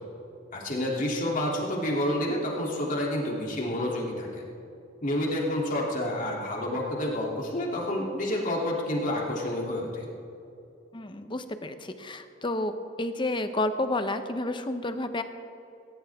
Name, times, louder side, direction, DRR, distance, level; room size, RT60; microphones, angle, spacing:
voice 1, 0.5-4.5 5.0-10.1, left 1 dB, 45° left, -2 dB, 3.1 m, -29 dB
voice 2, 10.9-15.2, left 2 dB, 25° left, 9 dB, 0.8 m, -30 dB
19.5 x 19.0 x 3.6 m, 2.7 s
head